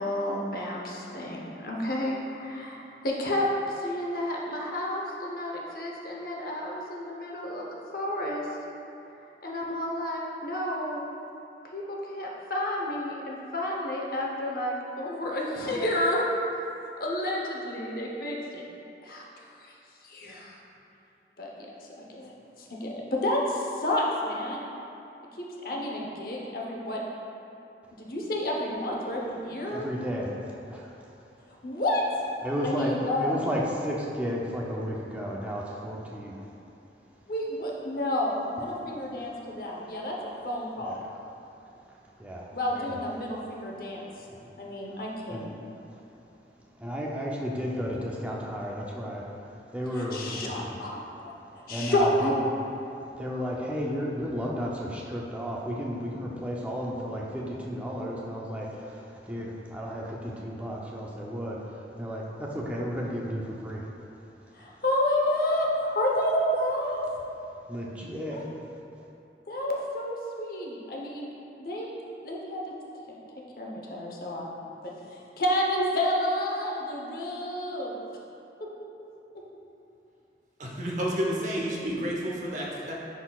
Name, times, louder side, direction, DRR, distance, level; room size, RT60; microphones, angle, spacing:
voice 1, 0.0-7.7 7.9-8.5 9.4-11.0 11.6-16.2 17.0-18.6 19.0-19.2 19.6-19.7 20.0-20.6 21.4-21.7 22.0-22.3 22.6-24.6 25.4-27.0 28.0-29.9 31.6-32.1 32.6-33.4 37.3-41.1 42.5-44.1 44.6-45.5 49.9-51.0 51.7-52.3 64.5-67.0 68.3-68.5 69.5-71.3 71.6-71.9 72.2-72.7 73.1-73.2 73.6-77.9 78.6-78.7, left 1 dB, 55° left, -2 dB, 0.8 m, -30 dB
voice 2, 29.7-31.1 32.4-36.5 40.8-41.1 41.9-43.0 44.3-44.5 44.8-45.5 45.9-46.0 46.8-50.8 51.4-52.3 53.1-63.9 67.7-68.5, equal, 10° right, -3 dB, 0.5 m, -33 dB
voice 3, 80.6-82.9, equal, 45° right, -3 dB, 0.8 m, -30 dB
9.9 x 4.0 x 2.3 m, 2.8 s
head